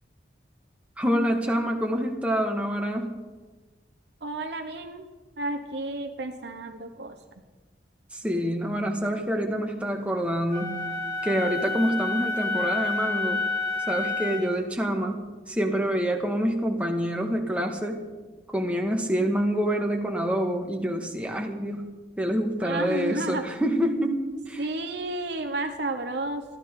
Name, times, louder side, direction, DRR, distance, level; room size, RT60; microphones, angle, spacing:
voice 1, 1.0-3.2 8.1-10.8 11.2-13.5 13.9-18.0 18.5-21.9 22.2-24.6, equal, 5° right, 2 dB, 1.6 m, -27 dB
voice 2, 4.2-5.1 5.4-7.2 22.6-23.4 24.6-26.4, right 2 dB, 65° right, 5 dB, 1.0 m, -32 dB
Wind instrument woodwind instrument, 10.5-14.6, left 3 dB, 20° left, 2.3 m, -29 dB
22.0 x 15.0 x 3.7 m, 1.3 s
head